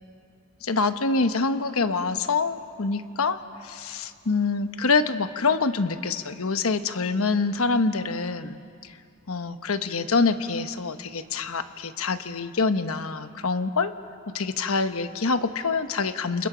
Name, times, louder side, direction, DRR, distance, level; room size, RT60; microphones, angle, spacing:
voice 1, 0.6-9.0 9.3-13.9 14.3-16.5, left 4 dB, 75° left, 10 dB, 1.0 m, -26 dB
29.0 x 28.0 x 5.1 m, 2.4 s
head